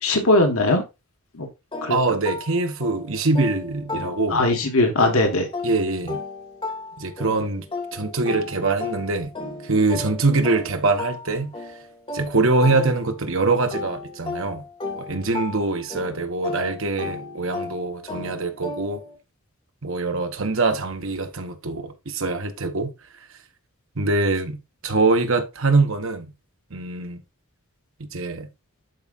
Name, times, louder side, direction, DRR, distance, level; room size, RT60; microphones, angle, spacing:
voice 1, 0.0-0.8 1.3-1.5 1.8-2.0 4.3-5.5, left 2 dB, 65° left, 1.6 m, -19 dB
sound 1, 1.7-4.6 5.0-13.3 13.7-19.2, left 3 dB, 25° left, 1.8 m, -35 dB
voice 2, 1.9-4.4 5.6-6.2 7.0-9.3 9.6-11.8 12.1-14.6 14.9-19.0 19.8-23.2 23.9-24.6 24.8-26.3 26.7-27.2 28.0-28.5, right 3 dB, 60° right, 1.2 m, -23 dB
11.5 x 4.8 x 2.5 m
head